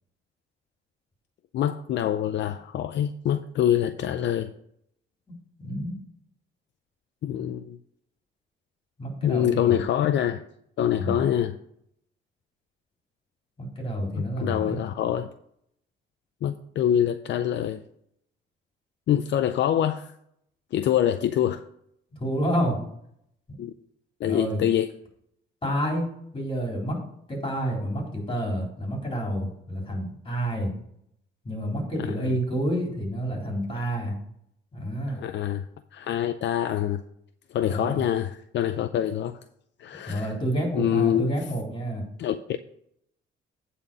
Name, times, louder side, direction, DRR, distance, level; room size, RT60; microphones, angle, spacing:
voice 1, 1.5-4.5 7.2-7.8 9.2-10.4 10.8-11.6 14.2-15.3 16.4-17.8 19.1-20.1 20.7-21.6 23.6-23.7 24.2-24.9 31.9-32.4 35.2-35.6 35.9-37.0 37.5-39.4 39.8-40.3 40.7-41.3 42.2-42.6, left 10 dB, 65° left, 0.5 m, -25 dB
voice 2, 5.6-5.9 9.0-9.7 10.9-11.2 13.6-14.8 22.2-22.8 24.2-24.6 25.6-26.1 26.3-27.0 27.3-30.7 31.4-34.1 34.7-35.2 37.7-38.0 40.1-42.0, equal, 25° left, 4.0 m, -29 dB
8.8 x 4.3 x 6.9 m
cardioid pair, 90°, 20 cm